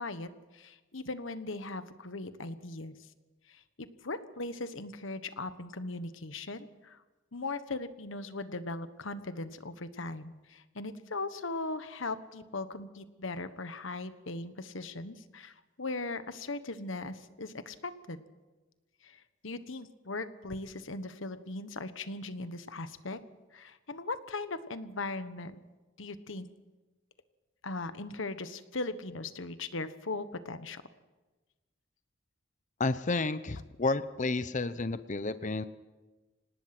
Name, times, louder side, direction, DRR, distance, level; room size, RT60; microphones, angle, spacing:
voice 1, 0.0-3.1 3.5-7.0 7.3-18.2 19.0-23.2 23.5-25.6 26.0-26.5 27.6-30.8, left 2 dB, 70° left, 11 dB, 1.3 m, -39 dB
voice 2, 32.8-35.6, left 3 dB, 35° left, 13 dB, 0.7 m, -31 dB
26.0 x 19.0 x 6.1 m, 1.2 s
head